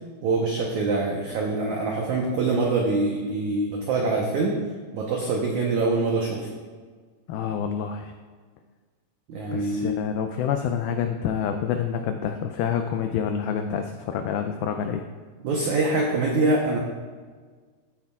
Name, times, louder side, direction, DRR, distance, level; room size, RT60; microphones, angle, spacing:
voice 1, 0.2-4.6 4.9-6.5 9.3-9.9 15.4-16.8, right 3 dB, 90° right, -1 dB, 1.7 m, -24 dB
voice 2, 7.3-8.1 9.5-15.0, left 8 dB, 90° left, 6 dB, 2.1 m, -27 dB
14.5 x 8.7 x 2.4 m, 1.5 s
omnidirectional pair, 4.8 m